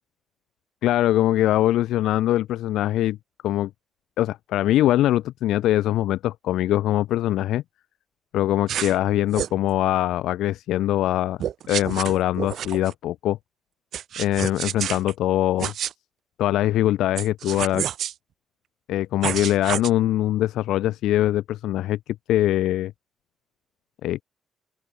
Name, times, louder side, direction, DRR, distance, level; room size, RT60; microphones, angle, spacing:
voice 1, 0.8-3.2 3.4-3.7 4.2-7.6 8.3-11.4 11.7-13.4 14.2-15.7 16.4-17.8 18.9-22.0 22.3-22.9 24.0-24.2, left 14 dB, 85° left, 1.6 m, -22 dB
sound 1, 8.7-9.0 9.3-9.6 11.4-12.9 13.9-15.1 15.6-15.9 17.2-18.1 19.2-19.9, right 10 dB, 70° right, 2.9 m, -29 dB
open air
cardioid pair, 90°, 0 cm